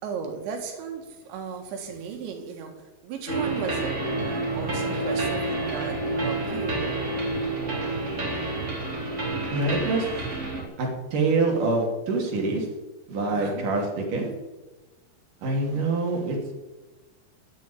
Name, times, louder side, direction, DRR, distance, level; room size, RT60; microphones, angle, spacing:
voice 1, 0.0-2.7 3.0-6.9 13.3-13.6, right 6 dB, 85° right, 3 dB, 4.1 m, -35 dB
sound 1, 3.3-10.6, right 2 dB, 25° right, 1.9 m, -29 dB
voice 2, 9.5-10.1 10.8-12.7 13.1-14.3 15.4-16.4, right 3 dB, 50° right, 0 dB, 3.9 m, -25 dB
9.1 x 9.1 x 9.9 m, 1.2 s
omnidirectional pair, 5.1 m